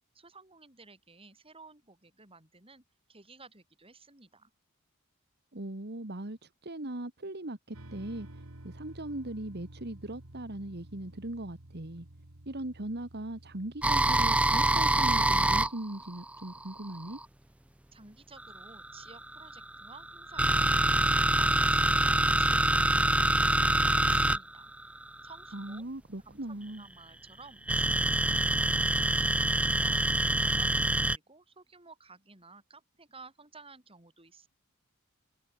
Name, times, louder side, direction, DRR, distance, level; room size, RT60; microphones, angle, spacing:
voice 1, 0.1-2.8 3.1-4.5 17.9-24.7 25.2-25.9 26.2-34.5, right 4 dB, 25° right, 7.5 m, -54 dB
voice 2, 5.5-8.3 8.6-12.1 12.5-17.2 25.5-26.8, right 1 dB, 50° right, 2.2 m, -39 dB
sound 1, 7.7-14.8, right 1 dB, 85° right, 2.4 m, -51 dB
sound 2, 13.8-17.2 18.4-25.8 27.7-31.2, right 1 dB, 5° right, 0.6 m, -25 dB
head